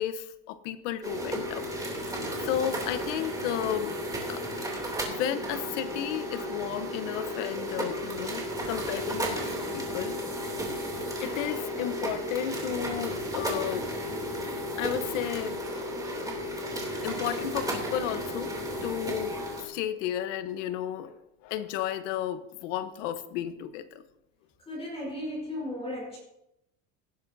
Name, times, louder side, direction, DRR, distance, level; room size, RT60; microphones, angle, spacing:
voice 1, 0.0-1.7 2.0-4.0 4.3-4.4 5.1-10.2 10.7-10.8 11.2-13.9 14.8-15.6 17.0-18.5 18.8-19.4 19.6-21.1 21.4-24.0, left 10 dB, 80° left, 11 dB, 1.2 m, -33 dB
sound 1, 1.0-19.7, equal, 10° right, 2.9 m, -33 dB
voice 2, 24.7-26.2, left 1 dB, 15° left, -4 dB, 4.4 m, -35 dB
18.5 x 10.5 x 2.8 m, 0.85 s
cardioid pair, 145°, 36 cm